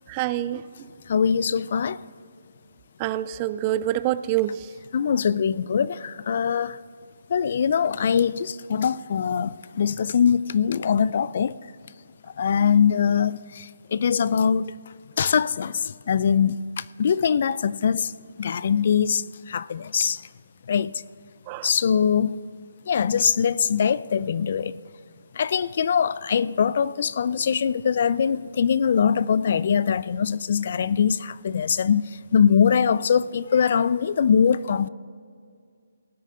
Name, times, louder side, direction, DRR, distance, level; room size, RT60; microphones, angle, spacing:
voice 1, 0.1-0.6 3.0-4.7 21.5-21.7, right 13 dB, 25° right, 0.3 m, -26 dB
voice 2, 1.1-2.0 4.9-6.8 7.3-11.6 12.4-14.7 15.2-18.1 18.4-20.2 20.7-20.9 21.6-22.4 22.9-24.7 25.3-34.9, left 7 dB, 50° left, 0.4 m, -22 dB
19.0 x 8.4 x 3.8 m
figure-of-eight pair, 155°, 0 cm